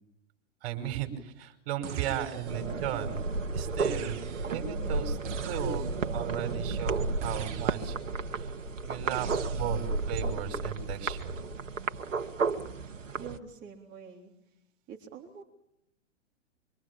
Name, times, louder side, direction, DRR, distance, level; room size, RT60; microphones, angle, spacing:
voice 1, 0.6-3.3 3.5-5.9 6.1-8.0 8.3-8.6 8.8-11.4, right 10 dB, 50° right, 7 dB, 5.8 m, -36 dB
sound 1, 1.8-2.8 3.8-4.7 5.2-6.1 7.2-8.1 9.1-10.0, right 8 dB, 70° right, 2.1 m, -42 dB
sound 2, 2.4-13.4, right 3 dB, 85° right, 1.9 m, -33 dB
voice 2, 13.2-14.3 14.9-15.4, right 6 dB, 30° right, -1 dB, 3.8 m, -45 dB
25.5 x 25.5 x 8.8 m, 0.79 s
hypercardioid pair, 120°, 37 cm